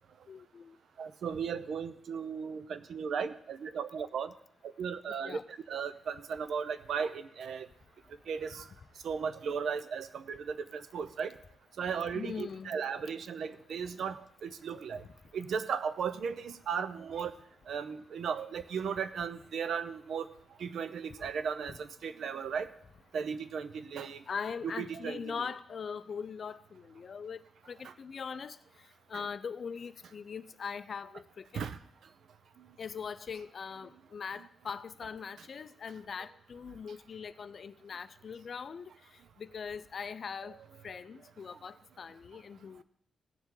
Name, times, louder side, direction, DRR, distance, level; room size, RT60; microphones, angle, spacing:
voice 1, 0.3-0.8 5.1-5.4 8.5-8.6 12.1-12.8 15.0-15.1 21.2-21.3 21.7-21.8 24.3-31.6 32.8-42.8, left 6 dB, 40° left, 0.4 m, -41 dB
voice 2, 1.0-4.3 4.6-5.4 5.7-7.7 8.3-8.6 9.0-11.3 11.8-14.2 14.4-15.0 15.3-17.3 17.7-20.3 20.6-22.7 23.1-24.2 24.8-25.2 29.1-29.2 31.5-31.8, right 6 dB, 60° right, 0.6 m, -36 dB
17.5 x 7.1 x 3.8 m
wide cardioid pair, 175°, 0 cm